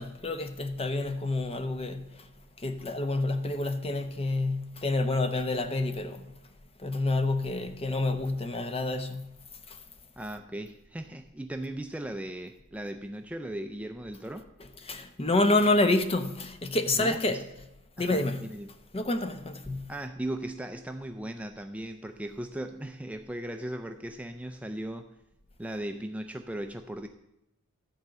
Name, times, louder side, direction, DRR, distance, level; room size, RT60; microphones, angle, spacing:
voice 1, 0.0-2.3 2.6-6.3 6.8-9.4 9.7-9.8 14.8-17.4 18.0-18.5 18.9-19.9, left 2 dB, 25° left, 0.8 m, -28 dB
voice 2, 10.2-14.5 16.9-17.4 18.0-18.7 19.9-25.1 25.6-27.1, right 1 dB, 5° right, 0.4 m, -37 dB
13.0 x 4.4 x 7.7 m
head